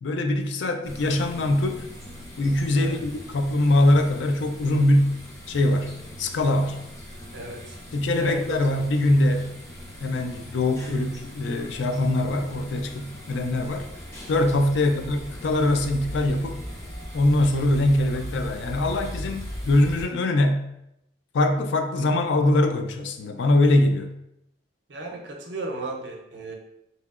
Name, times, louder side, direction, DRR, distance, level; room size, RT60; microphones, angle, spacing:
voice 1, 0.0-1.8 2.4-5.2 5.5-6.8 7.9-9.5 10.0-13.9 14.3-16.6 17.1-20.7 21.3-24.2, left 1 dB, 70° left, 6 dB, 0.3 m, -22 dB
sound 1, 0.8-20.0, equal, 15° left, 0.5 m, -39 dB
voice 2, 7.3-7.8 8.1-8.6 14.7-15.0 24.9-26.6, right 2 dB, 65° right, 1 dB, 0.5 m, -35 dB
3.0 x 2.8 x 2.4 m, 0.82 s
head